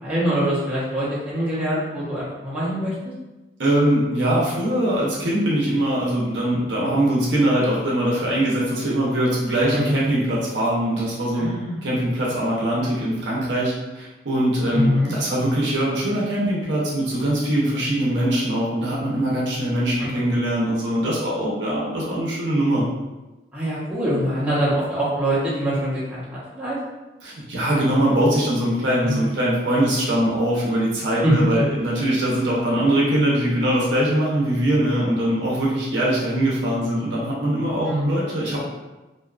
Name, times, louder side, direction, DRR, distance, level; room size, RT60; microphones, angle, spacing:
voice 1, 0.0-2.9 9.7-9.8 11.4-11.9 14.7-15.1 23.5-26.8 29.0-29.2 31.2-31.3 37.8-38.2, equal, 10° right, -11 dB, 0.8 m, -24 dB
voice 2, 3.6-11.5 11.8-22.9 27.2-38.6, right 1 dB, 80° right, -5 dB, 0.7 m, -22 dB
2.6 x 2.4 x 2.3 m, 1.1 s
head